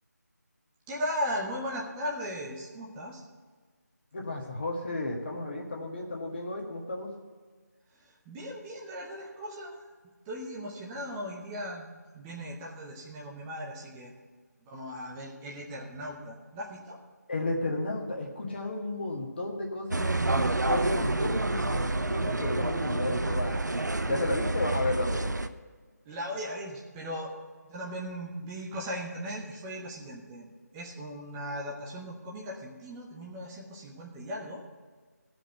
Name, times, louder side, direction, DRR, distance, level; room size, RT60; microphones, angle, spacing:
voice 1, 0.9-3.2 8.3-9.7 10.3-14.1 14.7-17.0 26.1-27.3 27.6-30.5 30.7-34.6, equal, 10° right, -3 dB, 0.8 m, -37 dB
voice 2, 4.1-7.1 17.3-23.5 24.1-25.3, left 2 dB, 35° left, -1 dB, 1.6 m, -33 dB
sound 1, 19.9-25.5, right 2 dB, 85° right, 0.7 m, -28 dB
15.0 x 5.2 x 8.0 m, 1.5 s
figure-of-eight pair, 165°, 9 cm